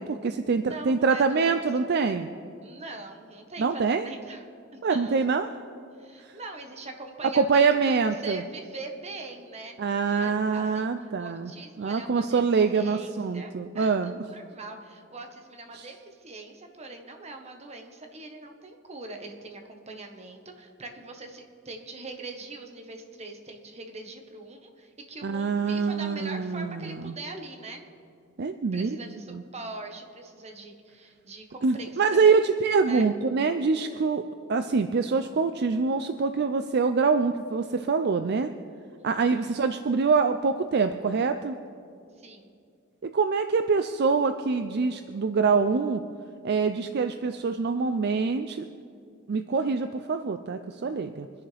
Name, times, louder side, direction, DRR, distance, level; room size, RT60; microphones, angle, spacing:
voice 1, 0.0-2.3 3.6-4.0 4.8-5.5 6.2-6.3 7.2-8.4 9.8-11.5 11.8-14.2 15.7-15.9 25.2-27.1 28.4-28.9 29.3-29.4 31.6-38.5 39.0-41.6 43.0-46.0 46.4-48.7 49.3-51.3, right 5 dB, 55° right, 9 dB, 0.5 m, -25 dB
voice 2, 0.6-1.9 2.6-4.5 4.7-5.3 6.0-9.8 10.1-10.9 11.2-12.4 12.7-27.8 28.7-32.4 32.9-33.1 39.0-39.4 42.2-42.6, right 3 dB, 35° right, 4 dB, 1.3 m, -42 dB
24.5 x 10.5 x 3.4 m, 2.4 s
head